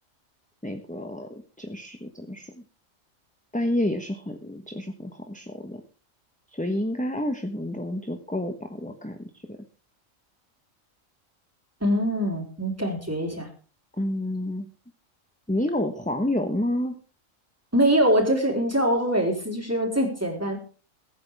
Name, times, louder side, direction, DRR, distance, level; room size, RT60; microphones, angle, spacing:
voice 1, 0.6-2.5 3.5-5.8 6.5-9.6 14.0-14.7 15.5-17.0, left 1 dB, 5° left, 5 dB, 1.1 m, -29 dB
voice 2, 11.8-13.5 17.7-20.6, equal, 10° right, 0 dB, 4.2 m, -23 dB
22.0 x 9.8 x 3.6 m, 0.38 s
omnidirectional pair, 1.4 m